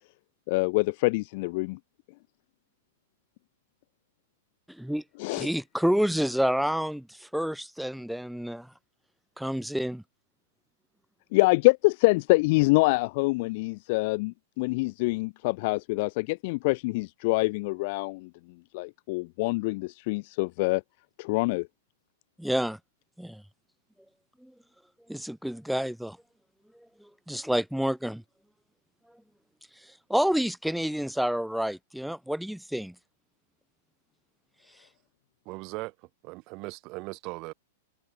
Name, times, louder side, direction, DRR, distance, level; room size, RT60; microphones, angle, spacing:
voice 1, 0.5-1.8 5.2-5.5 11.3-18.3 18.7-20.8 21.2-21.7, left 25 dB, 45° left, 0.3 m, -25 dB
voice 2, 4.7-5.0 5.3-8.7 9.4-10.0 22.4-22.8 23.2-23.4 24.4-24.5 25.1-26.2 27.0-28.2 30.1-32.9, equal, ahead, 0.7 m, -29 dB
voice 3, 35.5-35.9 36.2-37.5, right 25 dB, 35° right, 0.6 m, -38 dB
open air
supercardioid pair, 155°, 0 cm